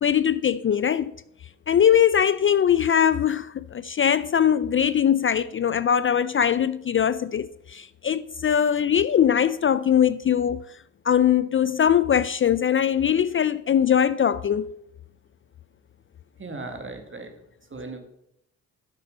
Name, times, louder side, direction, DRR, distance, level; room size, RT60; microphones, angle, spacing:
voice 1, 0.0-1.1 1.7-10.8 11.0-14.8, left 9 dB, 40° left, 0.4 m, -21 dB
voice 2, 16.4-17.3 17.7-18.0, right 3 dB, 35° right, 2.0 m, -36 dB
8.2 x 6.9 x 5.4 m
supercardioid pair, 55°, 33 cm